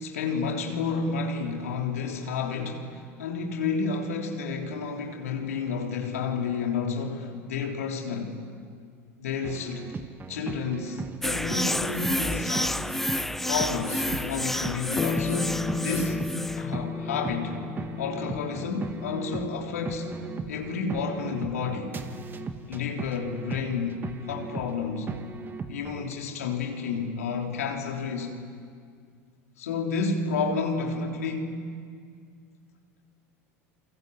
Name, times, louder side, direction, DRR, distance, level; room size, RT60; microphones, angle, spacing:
voice 1, 0.0-8.4 9.2-9.9 10.3-12.9 13.4-16.3 16.6-17.6 18.0-20.2 20.5-22.0 22.7-24.0 24.3-25.1 25.7-28.3 29.6-31.7, left 4 dB, 90° left, 3.4 m, -30 dB
sound 1, 9.4-26.1, right 5 dB, 25° right, 1.7 m, -39 dB
sound 2, 11.2-16.7, left 1 dB, 5° left, 0.6 m, -30 dB
sound 3, 15.0-23.8, left 5 dB, 25° left, 0.9 m, -36 dB
27.5 x 24.0 x 8.0 m
hypercardioid pair, 90°, 8 cm